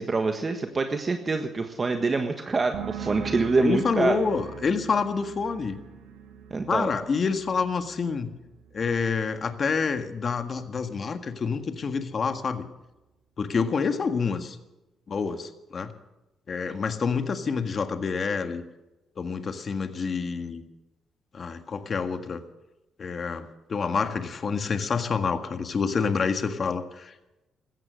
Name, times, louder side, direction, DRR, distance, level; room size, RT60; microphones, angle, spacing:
voice 1, 0.0-4.1 6.5-6.9, right 3 dB, 35° right, 6 dB, 1.4 m, -26 dB
sound 1, 2.7-10.2 10.5-11.0, right 7 dB, 85° right, 2.0 m, -42 dB
voice 2, 3.6-5.8 6.7-8.3 8.7-12.7 13.4-14.6 15.1-15.9 16.5-18.6 19.2-20.6 21.3-22.4 23.0-27.1, left 5 dB, 45° left, 8 dB, 1.7 m, -27 dB
16.0 x 14.0 x 6.4 m, 0.99 s
cardioid pair, 90°, 0 cm